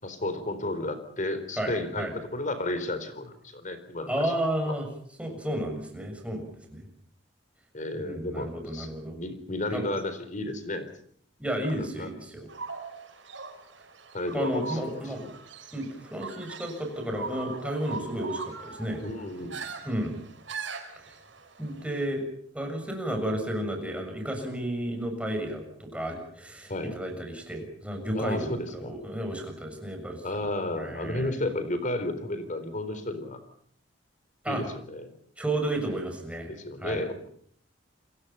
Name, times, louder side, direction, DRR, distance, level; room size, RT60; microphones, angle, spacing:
voice 1, 0.0-4.3 4.7-4.8 7.7-10.9 11.7-12.1 14.1-15.3 19.0-19.6 26.7-27.0 28.1-28.9 30.2-33.4 34.5-35.1 36.5-37.1, left 1 dB, 45° left, 11 dB, 4.1 m, -33 dB
voice 2, 1.6-2.1 4.1-4.9 5.2-6.9 7.9-9.2 9.7-9.9 11.4-12.5 14.3-15.3 15.7-19.0 19.8-20.2 21.6-22.2 22.5-30.2 30.8-31.4 34.4-34.6 35.4-36.5 36.8-37.1, right 1 dB, 5° right, 3 dB, 6.9 m, -32 dB
sound 1, 12.5-22.0, right 4 dB, 80° right, 5.5 m, -41 dB
29.0 x 23.0 x 5.7 m, 0.62 s
head